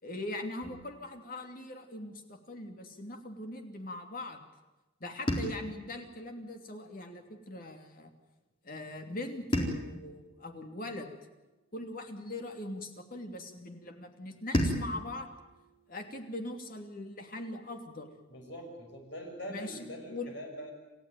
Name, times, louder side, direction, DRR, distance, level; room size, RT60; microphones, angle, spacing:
voice 1, 0.0-4.4 5.0-8.1 8.6-11.1 11.7-15.3 15.9-18.1 19.5-19.8 20.1-20.3, left 1 dB, 45° left, 5 dB, 2.7 m, -41 dB
sound 1, 0.6-2.8 5.3-7.6 9.5-12.0 14.5-17.1, equal, 25° left, 4.2 m, -38 dB
voice 2, 18.3-20.7, equal, 60° left, 2 dB, 6.4 m, -43 dB
28.5 x 15.0 x 9.2 m, 1.1 s
head